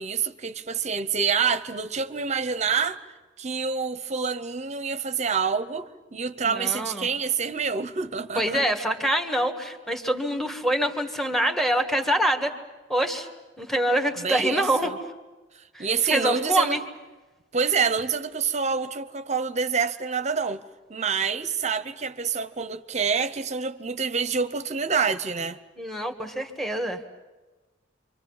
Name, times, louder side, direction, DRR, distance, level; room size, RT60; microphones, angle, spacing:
voice 1, 0.0-3.0 3.4-8.6 14.2-15.0 15.5-16.8 17.5-20.6 20.9-25.6, right 5 dB, 40° right, 0.8 m, -27 dB
voice 2, 6.4-7.1 8.3-12.5 12.9-13.3 13.6-14.9 15.7-16.8 25.8-27.0, right 1 dB, ahead, 1.7 m, -25 dB
29.5 x 25.0 x 7.2 m
head